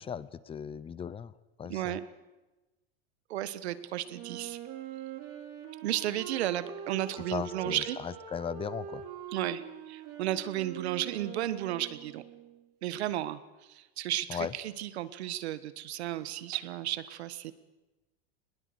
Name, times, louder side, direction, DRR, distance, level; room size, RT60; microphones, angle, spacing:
voice 1, 0.0-1.3 1.6-2.0 7.3-9.0 14.3-14.5, left 7 dB, 15° left, 18 dB, 0.7 m, -37 dB
voice 2, 1.7-2.0 3.3-4.6 5.8-8.0 9.3-12.2 12.8-17.5, right 13 dB, 85° right, 14 dB, 1.5 m, -34 dB
Wind instrument woodwind instrument, 4.1-12.6, right 9 dB, 50° right, 3.3 m, -44 dB
20.5 x 20.5 x 8.1 m, 1.1 s
supercardioid pair, 135°, 32 cm